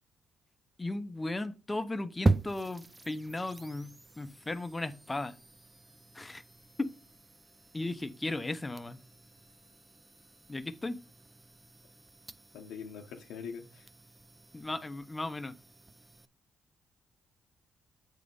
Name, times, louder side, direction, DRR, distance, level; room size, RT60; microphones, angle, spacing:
voice 1, 0.8-5.4 6.1-6.4 6.8-6.9 7.7-9.0 10.5-11.0 14.5-15.5, left 2 dB, 15° left, 0.8 m, -36 dB
sound 1, 2.3-16.3, right 2 dB, 15° right, 0.5 m, -39 dB
voice 2, 12.5-13.9, left 6 dB, 90° left, 1.0 m, -43 dB
8.4 x 3.3 x 5.3 m
cardioid pair, 90°, 0 cm